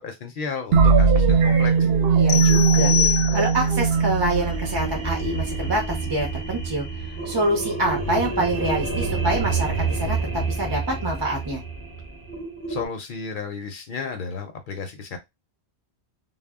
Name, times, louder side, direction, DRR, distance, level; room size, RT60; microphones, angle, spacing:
voice 1, 0.0-1.7 12.7-15.2, left 5 dB, 60° left, 6 dB, 0.7 m, -33 dB
sound 1, 0.7-5.4, right 5 dB, 70° right, 0.7 m, -19 dB
voice 2, 2.1-2.9 3.3-6.9 7.2-11.6, right 1 dB, 35° right, 0 dB, 0.5 m, -26 dB
sound 2, 2.3-3.8, left 12 dB, 85° left, 0.9 m, -25 dB
sound 3, 3.5-12.9, right 4 dB, 15° left, 0.6 m, -29 dB
2.1 x 2.0 x 3.4 m, 0.20 s
omnidirectional pair, 1.1 m